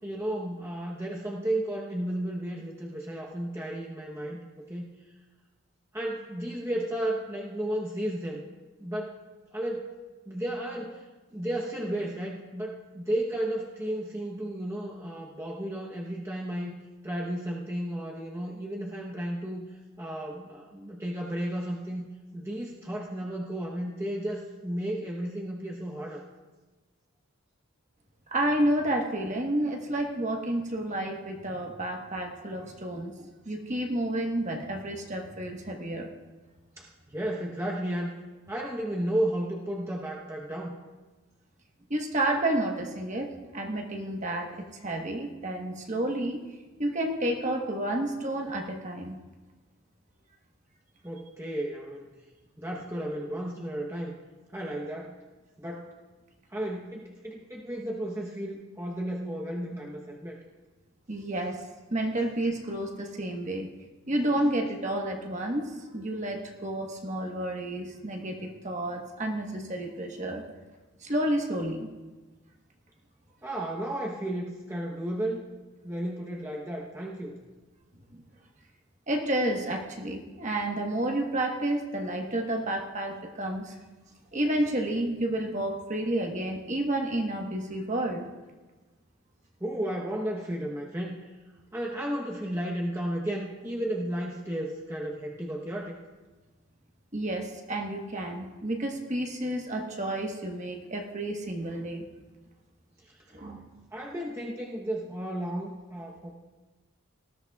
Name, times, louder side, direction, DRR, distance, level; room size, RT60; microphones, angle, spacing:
voice 1, 0.0-4.4 4.7-4.9 5.9-8.4 8.8-9.2 9.5-9.9 10.3-11.0 11.3-16.8 17.0-19.6 20.0-22.1 22.3-26.2 32.9-33.1 36.8-38.1 38.5-40.7 51.0-52.1 52.6-54.1 54.5-55.2 55.6-55.9 56.5-60.4 73.4-75.4 75.8-77.4 89.6-91.2 91.7-95.9 103.0-103.1 103.9-106.4, right 1 dB, 15° right, -3 dB, 0.9 m, -33 dB
voice 2, 28.3-36.1 41.9-46.4 46.8-49.2 61.1-61.6 61.9-63.7 64.1-70.4 71.0-71.9 78.1-78.2 79.1-83.8 84.3-88.2 97.1-102.0 103.3-103.6, right 1 dB, 35° right, 2 dB, 1.2 m, -30 dB
19.5 x 13.5 x 2.3 m, 1.2 s
head